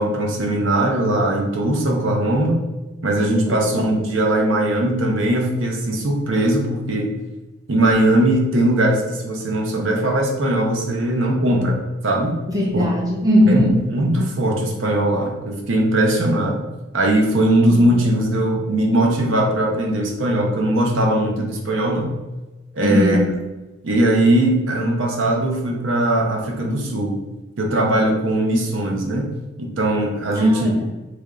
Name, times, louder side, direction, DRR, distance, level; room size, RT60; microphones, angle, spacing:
voice 1, 0.0-2.6 3.0-7.1 7.7-12.4 12.7-12.9 13.5-13.6 13.9-16.6 16.9-22.2 22.7-23.2 23.8-27.2 27.6-29.3 29.6-30.7, right 1 dB, 75° right, 1 dB, 0.6 m, -20 dB
voice 2, 12.5-13.8 17.7-17.9 22.8-23.3 30.3-30.8, left 1 dB, 20° right, -3 dB, 0.7 m, -19 dB
3.4 x 2.3 x 3.6 m, 1.1 s
head